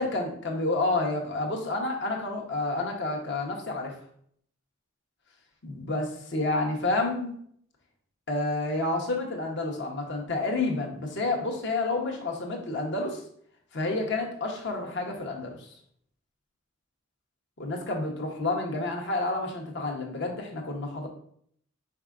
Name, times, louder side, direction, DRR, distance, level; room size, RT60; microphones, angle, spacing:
voice 1, 0.0-3.9 5.6-7.4 8.3-13.2 13.7-15.7 17.6-21.1, left 2 dB, 55° left, 1 dB, 0.9 m, -29 dB
4.7 x 4.6 x 2.4 m, 0.64 s
head